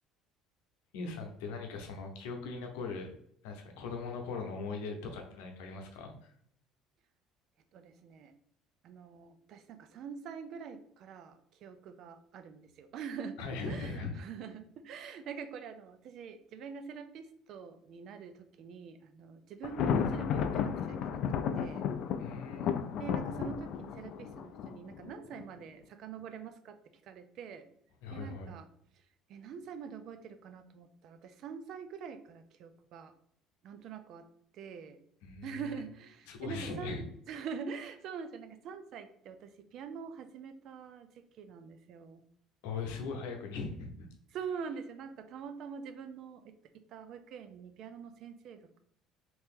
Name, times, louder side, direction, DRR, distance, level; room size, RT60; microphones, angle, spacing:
voice 1, 0.9-3.1 3.4-6.3 13.4-14.1 22.2-22.9 28.0-28.5 35.2-35.5 36.3-37.0 42.6-44.1, left 4 dB, 90° left, 2 dB, 0.7 m, -40 dB
voice 2, 7.7-8.3 8.8-21.2 21.6-21.9 23.0-26.8 27.0-27.7 28.1-28.7 29.3-33.1 33.6-34.3 34.5-35.0 35.4-41.1 41.3-42.2 44.3-48.8, right 6 dB, 60° right, 9 dB, 0.4 m, -45 dB
Thunder, 19.6-25.4, left 7 dB, 60° left, 0.3 m, -33 dB
2.9 x 2.7 x 3.5 m, 0.66 s
supercardioid pair, 105°, 0 cm